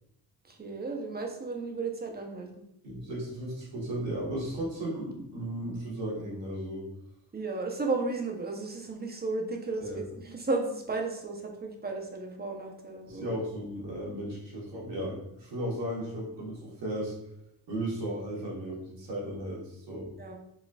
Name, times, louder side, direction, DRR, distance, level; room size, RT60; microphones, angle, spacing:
voice 1, 0.4-2.5 7.3-13.3 20.2-20.3, right 3 dB, 20° right, 2 dB, 0.7 m, -34 dB
voice 2, 2.8-6.8 9.8-10.0 13.1-17.1 17.7-20.1, right 1 dB, 80° right, -5 dB, 1.4 m, -35 dB
4.1 x 2.4 x 2.3 m, 0.77 s
supercardioid pair, 55°, 43 cm